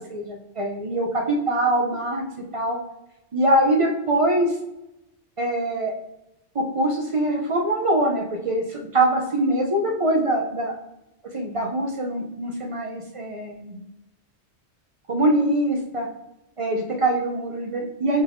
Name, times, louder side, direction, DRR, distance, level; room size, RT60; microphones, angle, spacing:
voice 1, 0.1-2.2 2.5-2.8 3.3-4.5 5.4-5.9 6.5-10.7 11.3-13.8 15.1-16.1 16.6-18.2, right 1 dB, 45° right, 1 dB, 0.4 m, -23 dB
5.4 x 3.4 x 2.5 m, 0.90 s
omnidirectional pair, 1.1 m